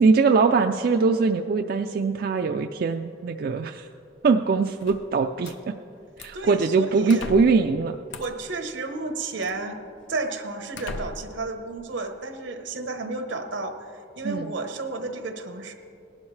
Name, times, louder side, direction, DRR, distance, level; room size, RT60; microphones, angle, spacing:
voice 1, 0.0-3.9 4.2-5.7 6.2-8.0 14.2-14.5, right 4 dB, 50° right, 6 dB, 0.3 m, -22 dB
sound 1, 4.8-5.6 6.2-6.5 7.1-7.7 8.1-8.5 9.4-9.6 10.1-10.2 10.7-11.4, left 3 dB, 90° left, 0.7 m, -38 dB
voice 2, 6.3-7.3 8.2-9.8 10.1-15.7, right 3 dB, 85° right, 6 dB, 1.0 m, -32 dB
19.0 x 11.5 x 3.2 m, 2.6 s
head